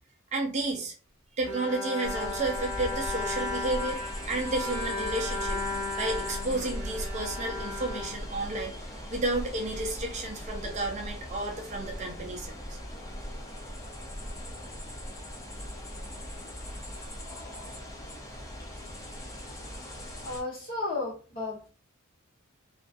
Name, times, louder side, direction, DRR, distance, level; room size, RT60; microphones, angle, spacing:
voice 1, 0.3-0.9 1.4-4.0 4.3-5.6 6.0-12.5, right 2 dB, 30° right, 1 dB, 0.5 m, -32 dB
Bowed string instrument, 1.4-8.8, left 2 dB, 80° right, 0.8 m, -35 dB
sound 1, 2.0-20.4, equal, 15° left, 0.5 m, -39 dB
voice 2, 20.2-21.7, left 2 dB, 40° left, -4 dB, 1.0 m, -34 dB
2.4 x 2.3 x 2.4 m, 0.37 s
head